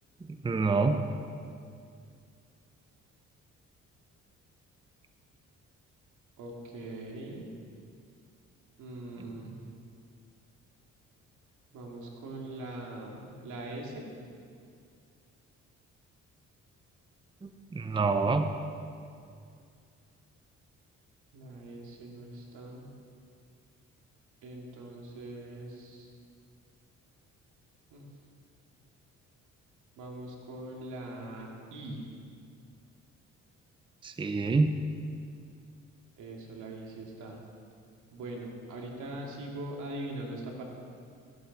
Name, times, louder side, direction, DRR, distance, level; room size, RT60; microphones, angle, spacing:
voice 1, 0.3-1.0 17.4-18.5 34.0-34.8, right 3 dB, 15° right, 8 dB, 0.6 m, -27 dB
voice 2, 6.4-7.5 8.8-9.5 11.7-14.1 21.3-22.9 24.4-26.1 27.9-28.1 30.0-32.0 36.2-37.4 38.1-40.6, right 1 dB, 85° right, 0 dB, 2.3 m, -42 dB
14.5 x 11.5 x 4.1 m, 2.3 s
cardioid pair, 90°, 30 cm